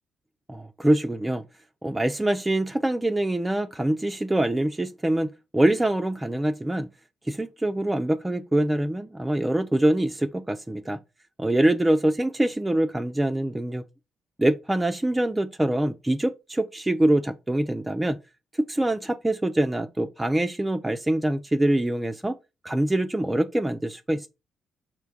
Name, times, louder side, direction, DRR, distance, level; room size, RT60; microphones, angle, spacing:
voice 1, 0.5-1.4 1.8-6.9 7.3-11.0 11.4-13.8 14.4-18.2 18.6-22.4 22.6-24.3, right 1 dB, 15° right, 0.4 m, -24 dB
4.3 x 2.2 x 4.6 m
hypercardioid pair, 45°, 0 cm